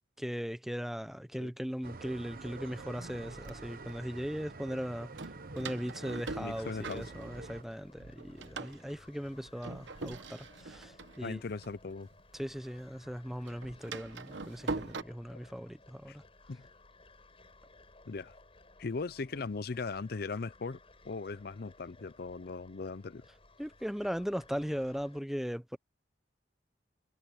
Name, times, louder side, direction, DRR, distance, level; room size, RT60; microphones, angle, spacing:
voice 1, 0.2-5.1 5.5-11.4 12.3-16.2 23.6-25.8, equal, ahead, 0.8 m, -38 dB
sound 1, 1.8-7.6, right 3 dB, 55° right, 1.0 m, -47 dB
Door, 2.0-2.1 2.8-4.0 5.2-7.7 8.0-12.5 12.8-15.0, right 3 dB, 80° right, 1.0 m, -43 dB
sound 2, 6.3-25.2, left 2 dB, 30° left, 6.2 m, -59 dB
voice 2, 6.4-7.0 11.2-12.1 15.3-15.4 16.1-16.2 16.5-16.6 18.1-18.3 18.8-20.8 21.0-23.2, left 4 dB, 55° left, 0.6 m, -38 dB
head